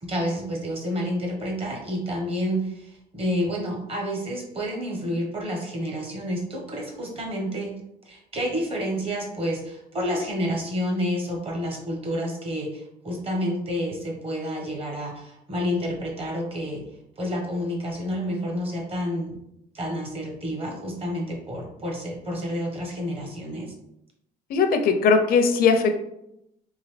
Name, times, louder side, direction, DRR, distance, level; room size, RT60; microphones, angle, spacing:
voice 1, 0.0-7.8 8.0-16.8 17.2-19.4 19.7-23.7, equal, 35° right, 1 dB, 1.2 m, -29 dB
voice 2, 24.5-25.9, left 5 dB, 60° left, 7 dB, 0.6 m, -19 dB
3.8 x 2.7 x 3.2 m, 0.80 s
cardioid pair, 110°, 17 cm